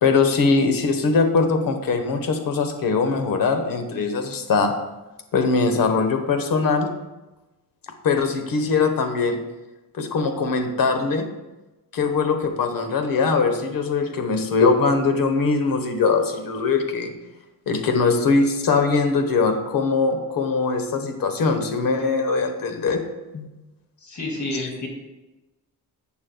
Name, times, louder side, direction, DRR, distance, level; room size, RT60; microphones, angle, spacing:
voice 1, 0.0-4.7 5.3-6.9 8.0-9.4 10.0-11.3 11.9-17.1 17.7-23.0 23.3-23.5, left 4 dB, 65° left, 6 dB, 1.3 m, -21 dB
voice 2, 24.0-24.9, left 2 dB, 50° left, 0 dB, 2.4 m, -29 dB
14.5 x 8.6 x 2.3 m, 1.1 s
cardioid pair, 135°, 37 cm